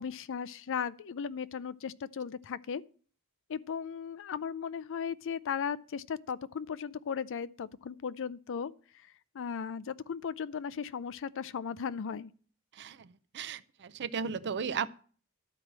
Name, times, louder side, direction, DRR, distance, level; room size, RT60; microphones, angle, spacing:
voice 1, 0.0-2.8 3.5-8.7 9.3-12.3, left 7 dB, 60° left, 0.4 m, -36 dB
voice 2, 12.8-13.1 13.3-14.9, right 6 dB, 50° right, 0.5 m, -35 dB
11.5 x 4.7 x 7.3 m
head